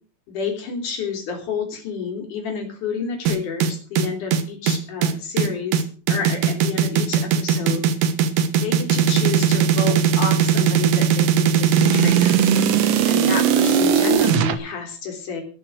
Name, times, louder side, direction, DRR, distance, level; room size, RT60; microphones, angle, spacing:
voice 1, 0.3-5.8 6.1-7.8 8.6-12.4 13.1-15.4, left 5 dB, 45° left, 4 dB, 4.2 m, -29 dB
sound 1, 3.3-14.5, right 7 dB, 90° right, 1.8 m, -18 dB
19.5 x 7.0 x 6.3 m, 0.40 s
omnidirectional pair, 5.7 m